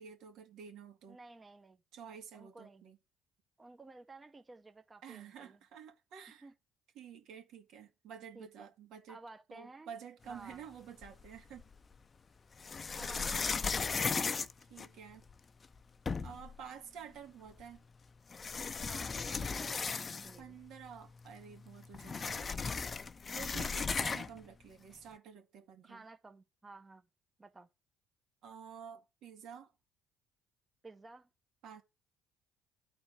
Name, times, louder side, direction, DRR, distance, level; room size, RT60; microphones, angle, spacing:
voice 1, 0.0-1.2 1.9-3.0 5.0-6.5 6.9-9.2 9.5-11.6 13.0-13.6 14.7-15.2 16.2-17.8 20.4-22.5 23.3-26.0 28.4-29.7 31.6-31.8, right 7 dB, 70° right, 2.3 m, -50 dB
voice 2, 1.1-1.8 2.3-2.8 3.6-5.6 6.4-6.5 8.3-8.7 9.1-9.9 10.3-10.7 12.9-14.3 18.9-20.6 22.2-22.4 25.8-27.1 27.4-27.7 30.8-31.3, right 3 dB, 20° right, 1.1 m, -54 dB
sound 1, 11.0-11.8 12.6-15.3 15.8-15.9 16.1-16.5 17.6-17.7 18.3-20.5 20.8-20.9 21.2-24.4, left 5 dB, 35° left, 0.7 m, -36 dB
11.5 x 4.3 x 7.4 m
supercardioid pair, 75°, 0 cm